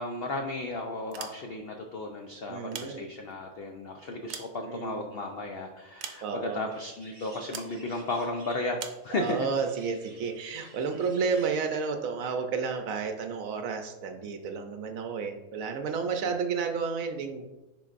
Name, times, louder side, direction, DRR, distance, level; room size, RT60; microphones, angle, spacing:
voice 1, 0.0-9.5 16.2-16.3, left 2 dB, 75° left, 3 dB, 0.5 m, -34 dB
sound 1, 1.0-1.8 2.5-3.5 4.0-5.2 6.0-6.6 7.5-7.8 8.8-9.1, right 8 dB, 85° right, 1.2 m, -42 dB
voice 2, 2.5-3.1 4.7-5.0 6.2-6.7 9.1-17.5, right 5 dB, 70° right, 6 dB, 1.0 m, -31 dB
sound 2, 6.7-11.7, right 2 dB, 35° right, 0.9 m, -53 dB
9.9 x 3.8 x 2.5 m, 1.0 s
omnidirectional pair, 1.6 m